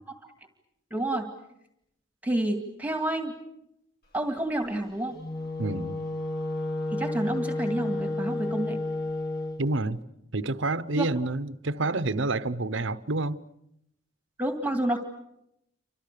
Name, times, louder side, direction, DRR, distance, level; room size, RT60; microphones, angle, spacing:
voice 1, 0.9-1.3 2.2-3.3 4.1-5.2 6.9-8.8 10.9-11.1 14.4-15.0, right 1 dB, 10° right, 2.2 m, -29 dB
Wind instrument woodwind instrument, 5.1-9.6, left 2 dB, 55° left, 2.3 m, -31 dB
voice 2, 5.6-6.0 9.6-10.0 10.3-13.4, right 2 dB, 65° right, 1.0 m, -28 dB
29.5 x 26.5 x 6.8 m
head